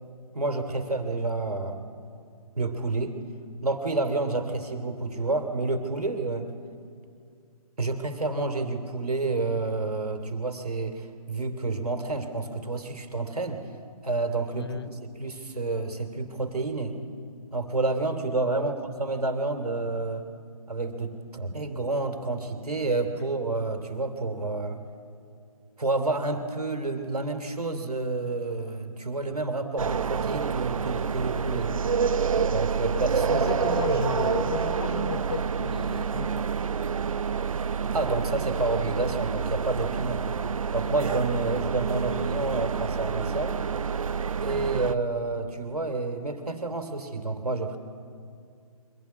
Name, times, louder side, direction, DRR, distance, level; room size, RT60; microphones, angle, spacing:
voice 1, 0.3-1.8 2.6-3.2 3.6-6.5 7.8-13.6 14.0-17.0 17.5-20.3 20.7-24.8 25.8-31.8 32.5-34.2 37.9-40.3 40.7-43.6 44.4-47.8, right 3 dB, 80° right, 2.8 m, -29 dB
voice 2, 14.6-14.9 18.5-18.7 33.3-36.6, left 7 dB, 40° left, 0.8 m, -34 dB
sound 1, 29.8-45.0, right 6 dB, 60° right, 0.8 m, -28 dB
23.5 x 16.5 x 9.5 m
figure-of-eight pair, 145°, 19 cm